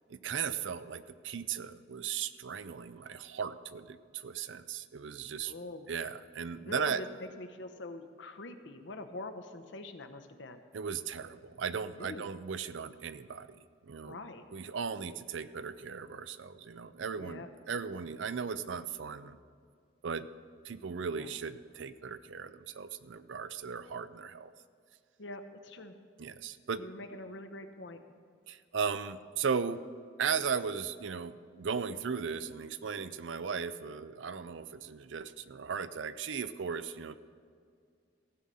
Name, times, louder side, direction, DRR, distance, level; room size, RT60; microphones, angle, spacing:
voice 1, 0.1-5.5 5.9-7.0 10.7-14.2 14.5-19.4 20.0-20.3 20.6-24.5 26.2-26.8 28.5-29.8 30.2-37.2, right 6 dB, 85° right, 13 dB, 0.5 m, -37 dB
voice 2, 5.5-5.9 6.6-10.6 12.0-12.3 14.1-14.4 17.2-17.5 21.1-21.3 25.2-25.9 26.8-28.0, left 2 dB, 70° left, 8 dB, 0.9 m, -44 dB
15.0 x 5.6 x 7.6 m, 2.2 s
head